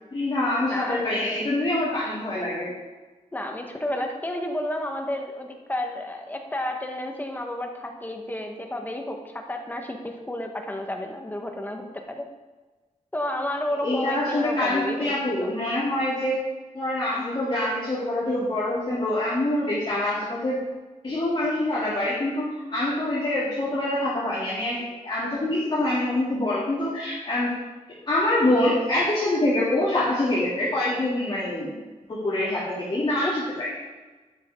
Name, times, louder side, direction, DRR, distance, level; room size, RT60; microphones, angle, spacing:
voice 1, 0.1-2.7 13.8-16.5 16.7-20.6 21.0-27.6 28.1-31.7 32.1-33.7, left 1 dB, 35° left, -10 dB, 2.8 m, -25 dB
voice 2, 0.6-1.5 3.3-12.3 13.1-15.1 15.4-15.5 33.2-33.3, left 1 dB, 15° left, 3 dB, 1.3 m, -31 dB
12.0 x 10.5 x 3.7 m, 1.2 s
wide cardioid pair, 170°, 13 cm